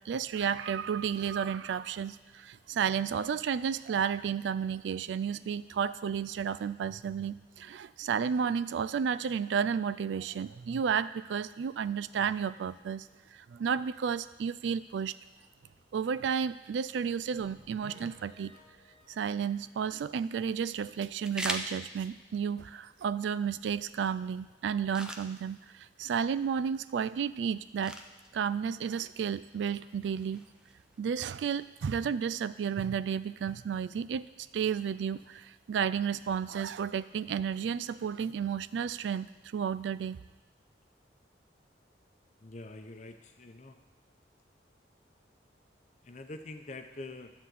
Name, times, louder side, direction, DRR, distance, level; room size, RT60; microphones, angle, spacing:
voice 1, 0.1-13.1 13.3-15.2 15.9-18.5 19.1-28.0 28.3-30.4 31.0-39.3 39.5-40.2, right 7 dB, 75° right, 16 dB, 0.3 m, -32 dB
sound 1, 17.3-20.0 20.4-20.5 20.9-21.0 21.4-21.5, equal, 40° right, 2.1 m, -58 dB
sound 2, 19.5-32.6, equal, 5° right, 0.5 m, -46 dB
voice 2, 42.4-43.8 46.0-47.3, left 2 dB, 40° left, 6 dB, 0.7 m, -45 dB
11.0 x 4.1 x 7.6 m, 1.2 s
head